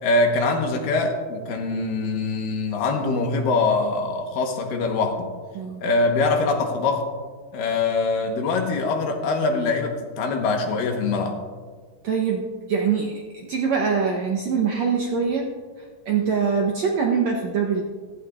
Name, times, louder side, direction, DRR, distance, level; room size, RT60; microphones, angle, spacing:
voice 1, 0.0-5.3 5.8-7.1 7.5-11.4, left 3 dB, 70° left, 3 dB, 2.8 m, -23 dB
voice 2, 12.0-15.5 16.1-17.8, right 6 dB, 70° right, 0 dB, 1.7 m, -23 dB
16.0 x 15.0 x 2.5 m, 1.5 s
omnidirectional pair, 4.3 m